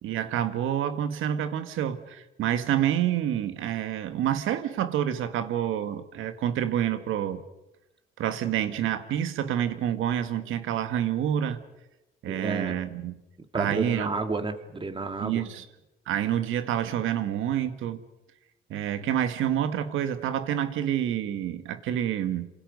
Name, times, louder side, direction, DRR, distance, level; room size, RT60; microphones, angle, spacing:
voice 1, 0.0-7.4 8.2-11.6 12.2-13.2 13.5-14.1 15.2-15.6 16.1-18.0 18.7-22.5, right 10 dB, 85° right, 1.7 m, -28 dB
voice 2, 12.3-12.8 13.5-15.4, right 3 dB, 25° right, 2.3 m, -31 dB
28.0 x 26.5 x 5.4 m
cardioid pair, 90°, 20 cm